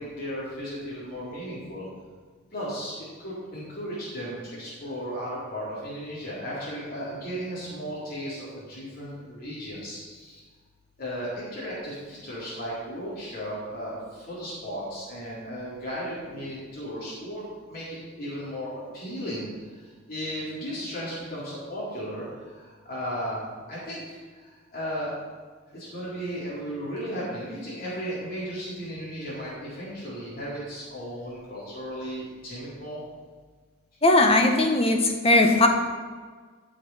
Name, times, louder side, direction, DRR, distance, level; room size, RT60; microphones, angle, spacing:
voice 1, 0.0-1.8 2.5-10.4 11.0-17.4 17.7-17.8 18.1-19.5 20.1-22.3 22.6-23.4 23.7-24.2 24.7-25.1 25.7-33.0, equal, 45° left, -9 dB, 3.7 m, -35 dB
voice 2, 34.0-35.7, left 2 dB, 30° left, 4 dB, 1.1 m, -19 dB
13.0 x 6.4 x 5.6 m, 1.5 s
head